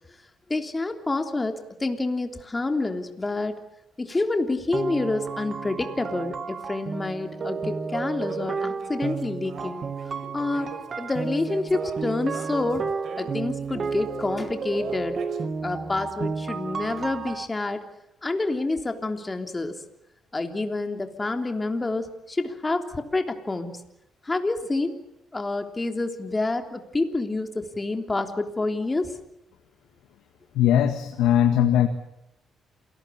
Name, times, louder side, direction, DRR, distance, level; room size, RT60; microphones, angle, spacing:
voice 1, 0.5-3.6 4.0-9.8 10.3-10.7 11.0-12.9 13.2-15.1 15.6-17.8 18.2-19.8 20.3-23.8 24.2-24.9 25.3-29.1, left 2 dB, 20° left, 6 dB, 3.4 m, -28 dB
sound 1, 4.7-17.5, right 5 dB, 45° right, 1.8 m, -32 dB
sound 2, 8.3-14.2 14.7-15.4, right 5 dB, 65° right, 4.2 m, -42 dB
voice 2, 30.5-31.9, left 10 dB, 90° left, 7 dB, 1.8 m, -20 dB
28.0 x 18.5 x 8.7 m, 0.85 s
cardioid pair, 90°, 0 cm